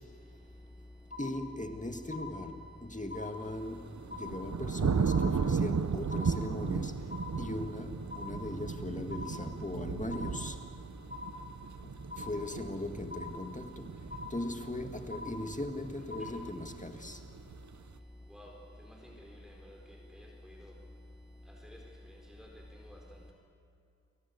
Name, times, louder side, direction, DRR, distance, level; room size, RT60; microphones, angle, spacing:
sound 1, 1.1-1.8 2.1-2.8 3.1-3.8 4.1-4.8 5.1-5.8 6.1-6.8 7.1-7.8 8.1-8.8 9.1-9.8 10.1-10.8 11.1-11.8 12.1-12.8 13.1-13.8 14.1-14.8 15.1-15.8 16.1-16.4, left 3 dB, 45° left, 5.8 m, -45 dB
voice 1, 1.2-3.9 4.1-7.1 7.4-10.6 11.8-13.8 14.3-17.2, left 1 dB, 25° left, 5 dB, 2.0 m, -39 dB
sound 2, 3.7-17.9, right 5 dB, 70° right, 0.8 m, -36 dB
voice 2, 19.0-19.8 20.1-20.7 21.6-21.8 22.4-22.5 22.8-23.0, left 1 dB, ahead, -1 dB, 4.2 m, -51 dB
29.0 x 18.0 x 8.2 m, 2.6 s
wide cardioid pair, 50°, 30 cm